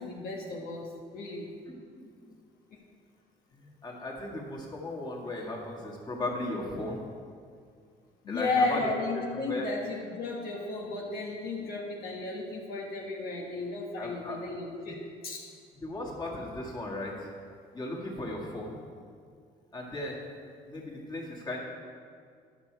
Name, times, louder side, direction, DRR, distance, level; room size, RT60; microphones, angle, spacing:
voice 1, 0.0-1.5 2.7-2.8 8.2-15.0 15.2-15.4, left 3 dB, 65° left, -2 dB, 1.3 m, -33 dB
voice 2, 3.5-7.0 8.3-8.9 9.3-9.7 11.6-11.7 14.0-14.4 14.9-15.0 15.8-17.3 17.7-18.8 19.7-20.3 20.7-21.6, left 2 dB, 25° left, -3 dB, 1.9 m, -36 dB
11.0 x 6.2 x 4.6 m, 2.2 s
cardioid pair, 110°, 17 cm